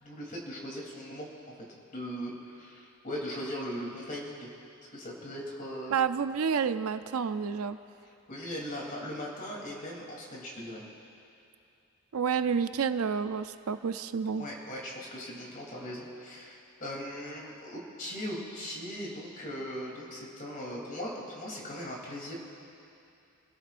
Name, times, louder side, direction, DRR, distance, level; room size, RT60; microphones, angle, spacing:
voice 1, 0.0-1.3 1.9-4.5 4.9-6.0 8.3-10.8 14.3-22.3, equal, 40° left, -2 dB, 3.1 m, -39 dB
voice 2, 5.9-7.8 12.1-14.4, right 6 dB, 75° right, 11 dB, 0.5 m, -29 dB
27.0 x 16.5 x 2.5 m, 2.6 s
head